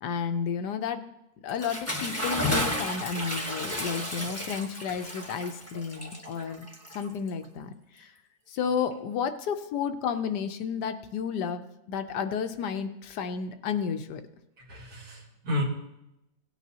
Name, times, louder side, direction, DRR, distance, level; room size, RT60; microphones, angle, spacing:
voice 1, 0.0-1.0 1.4-6.7 6.9-7.7 8.0-8.1 8.5-14.2, left 6 dB, 80° left, 8 dB, 1.3 m, -32 dB
Bathtub (filling or washing) / Splash splatter, 1.5-7.4, left 1 dB, 10° left, 1.0 m, -33 dB
voice 2, 14.6-15.6, left 1 dB, 60° right, 0 dB, 2.2 m, -33 dB
17.5 x 9.2 x 2.8 m, 0.88 s
omnidirectional pair, 1.8 m